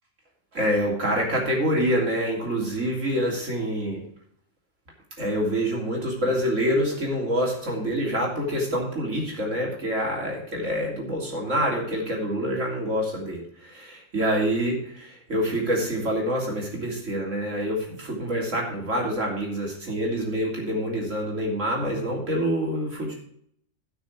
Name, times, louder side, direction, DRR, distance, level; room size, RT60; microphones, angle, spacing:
voice 1, 0.5-4.0 5.2-23.1, equal, 85° right, -1 dB, 3.6 m, -26 dB
15.0 x 6.3 x 4.6 m, 0.66 s
omnidirectional pair, 1.3 m